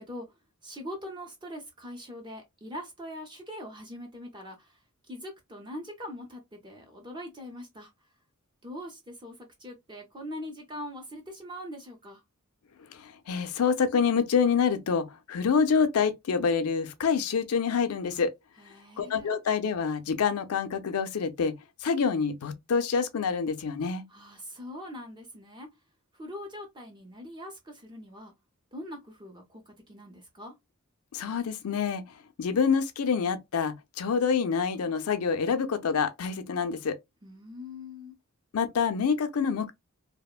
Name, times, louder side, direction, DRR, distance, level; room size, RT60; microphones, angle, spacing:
voice 1, 0.0-7.9 8.6-12.2 18.6-19.3 24.1-25.7 26.1-28.3 28.7-30.5 37.2-38.1, left 1 dB, 20° right, 0.6 m, -42 dB
voice 2, 12.9-18.3 19.0-21.5 21.8-24.0 31.1-32.0 32.4-37.0 38.5-39.7, left 6 dB, 90° left, 0.5 m, -27 dB
2.8 x 2.1 x 2.3 m
head